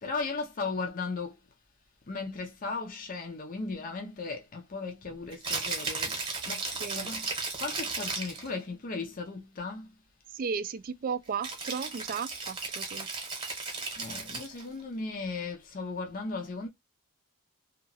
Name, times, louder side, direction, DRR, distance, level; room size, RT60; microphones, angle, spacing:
voice 1, 0.0-1.3 2.1-6.1 6.5-6.7 6.9-7.3 7.6-9.9 14.0-16.7, left 4 dB, 40° left, 0.5 m, -36 dB
Rattle (instrument), 5.3-8.5 11.4-14.7, right 3 dB, 20° right, 0.9 m, -35 dB
voice 2, 6.8-7.1 10.3-13.1, right 6 dB, 40° right, 0.3 m, -35 dB
2.8 x 2.3 x 2.6 m
head